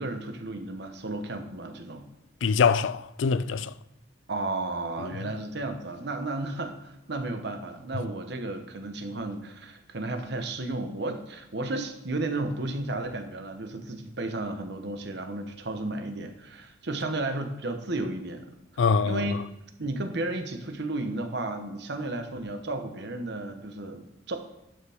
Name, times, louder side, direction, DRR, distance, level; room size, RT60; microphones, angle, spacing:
voice 1, 0.0-2.0 4.3-18.5 18.7-19.4 19.8-24.4, right 2 dB, 60° right, 1.0 m, -33 dB
voice 2, 2.4-3.7 5.0-5.1 18.8-19.4, left 5 dB, 75° left, 0.4 m, -24 dB
11.0 x 7.0 x 3.5 m
head